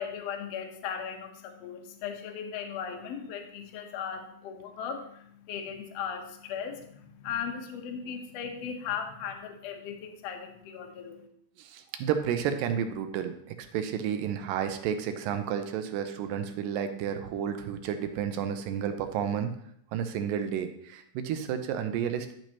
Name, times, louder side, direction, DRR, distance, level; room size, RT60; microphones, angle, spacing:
voice 1, 0.0-11.3, left 7 dB, 80° left, 4 dB, 1.5 m, -37 dB
voice 2, 11.6-13.3 13.6-19.5 19.9-22.3, right 8 dB, 80° right, 8 dB, 2.3 m, -31 dB
11.5 x 6.1 x 2.8 m, 0.69 s
omnidirectional pair, 4.1 m